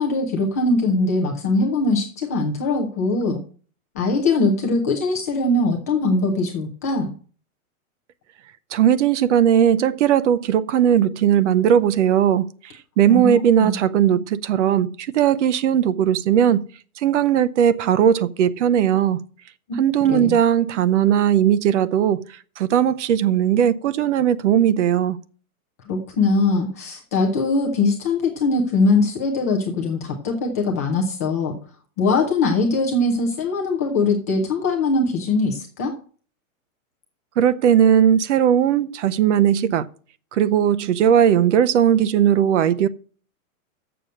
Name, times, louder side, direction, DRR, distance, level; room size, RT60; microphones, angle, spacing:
voice 1, 0.0-3.4 4.0-7.1 13.1-13.8 20.1-20.4 25.9-31.6 32.0-35.9, left 3 dB, 10° left, 0.4 m, -21 dB
voice 2, 8.7-12.5 13.0-16.6 17.0-19.2 19.8-22.3 22.6-25.2 37.4-39.9 40.3-42.9, right 9 dB, 55° right, 0.7 m, -18 dB
6.9 x 6.3 x 7.5 m
hypercardioid pair, 160°, 42 cm